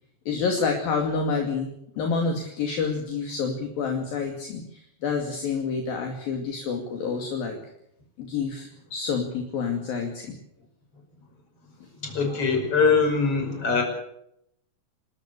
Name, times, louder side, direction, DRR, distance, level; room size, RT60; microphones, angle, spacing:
voice 1, 0.3-7.6 8.2-10.4, left 5 dB, 60° left, 3 dB, 4.0 m, -28 dB
voice 2, 11.9-13.8, left 4 dB, 30° left, 4 dB, 6.3 m, -22 dB
29.0 x 13.5 x 8.4 m, 0.76 s
omnidirectional pair, 5.1 m